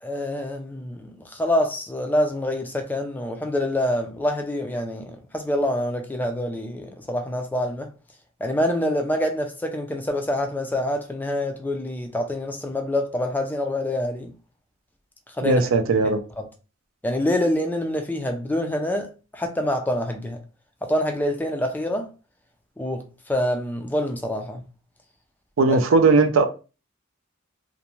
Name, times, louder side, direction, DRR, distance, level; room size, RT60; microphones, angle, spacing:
voice 1, 0.0-7.9 8.4-14.3 15.4-15.7 16.4-16.5 17.0-20.4 20.8-22.1 22.8-24.6 25.7-25.8, left 1 dB, 10° left, 0.3 m, -26 dB
voice 2, 15.4-16.2 25.6-26.5, right 3 dB, 85° right, 0.4 m, -18 dB
2.5 x 2.1 x 2.9 m
head